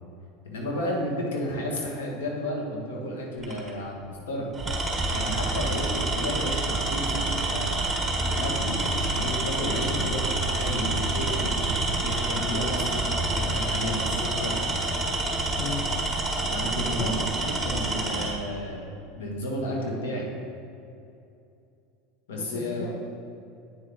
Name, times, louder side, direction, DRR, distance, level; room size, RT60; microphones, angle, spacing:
voice 1, 0.4-4.5 5.1-7.8 8.2-14.6 16.5-17.1 17.5-20.3 22.3-22.9, left 1 dB, 85° left, -1 dB, 1.8 m, -32 dB
Tools, 3.4-3.7 4.5-18.4, right 2 dB, 10° right, 1.5 m, -27 dB
voice 2, 17.0-17.5 22.3-22.9, left 6 dB, 50° left, 0 dB, 0.8 m, -36 dB
8.9 x 6.4 x 3.7 m, 2.6 s
supercardioid pair, 105°, 0 cm